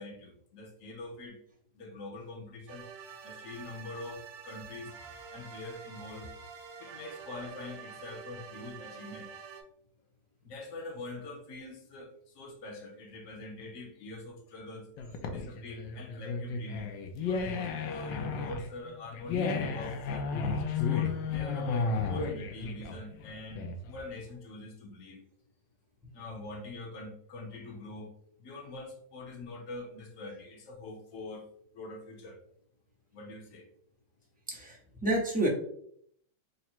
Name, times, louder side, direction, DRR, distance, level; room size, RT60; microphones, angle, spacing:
voice 1, 0.0-1.4 1.7-2.9 3.2-4.9 5.3-6.3 6.8-9.3 10.4-14.9 15.3-20.3 20.7-25.2 26.1-28.1 28.4-32.4 33.1-33.7, left 2 dB, 55° left, 3 dB, 1.0 m, -44 dB
sound 1, 2.7-9.6, right 6 dB, 65° right, 1.0 m, -47 dB
sound 2, 15.0-24.0, left 5 dB, 80° left, 1.3 m, -33 dB
voice 2, 34.5-35.5, right 1 dB, 15° right, -4 dB, 0.3 m, -29 dB
3.8 x 2.1 x 4.3 m, 0.67 s
omnidirectional pair, 2.0 m